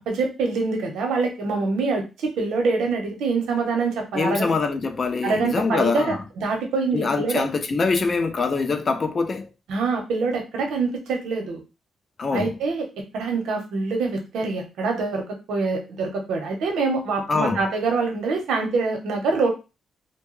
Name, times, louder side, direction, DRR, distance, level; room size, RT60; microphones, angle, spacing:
voice 1, 0.1-4.5 5.2-7.4 9.7-11.6 12.3-12.9 13.1-15.2 15.5-19.5, right 4 dB, 85° right, 0.8 m, -25 dB
voice 2, 4.1-6.2 6.9-9.5 12.2-12.5 17.3-17.6, left 4 dB, 40° left, 0.4 m, -24 dB
2.6 x 2.2 x 3.0 m
cardioid pair, 105°, 0 cm